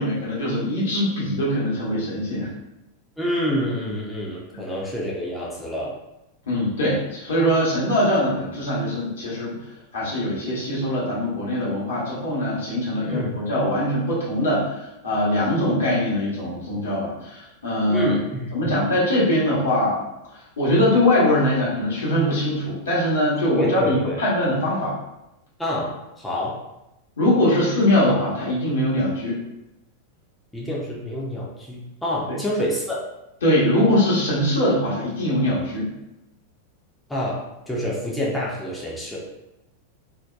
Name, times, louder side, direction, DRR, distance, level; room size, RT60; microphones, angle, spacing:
voice 1, 0.0-2.5 6.5-9.6 9.9-18.2 18.5-20.0 20.6-24.9 27.2-29.4 32.3-32.4 33.4-35.9, left 1 dB, 65° left, -7 dB, 0.9 m, -22 dB
voice 2, 3.2-5.9 13.0-13.3 17.9-18.8 23.5-24.2 25.6-26.6 30.5-33.0 37.1-39.3, equal, 5° left, -5 dB, 0.5 m, -27 dB
2.6 x 2.1 x 2.3 m, 0.91 s
figure-of-eight pair, 90°, 0 cm